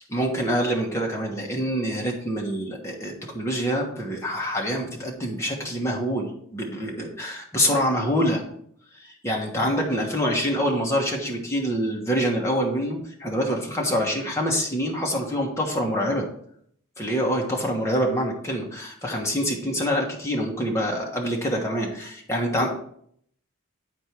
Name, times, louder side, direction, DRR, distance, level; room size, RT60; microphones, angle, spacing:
voice 1, 0.1-8.4 9.0-16.3 17.0-22.7, equal, 10° left, -1 dB, 1.3 m, -26 dB
10.0 x 4.4 x 4.6 m, 0.66 s
head